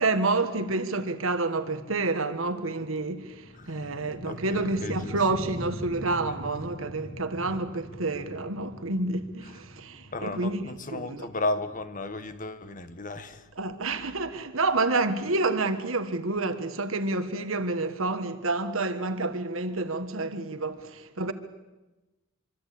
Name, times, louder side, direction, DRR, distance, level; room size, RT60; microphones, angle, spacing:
voice 1, 0.0-11.3 13.5-21.3, right 3 dB, 70° right, 1.6 m, -29 dB
sound 1, 2.3-12.2, equal, 85° left, 5.7 m, -43 dB
voice 2, 4.2-5.1 10.1-13.4, left 2 dB, 40° left, 1.7 m, -34 dB
25.0 x 25.0 x 8.6 m
head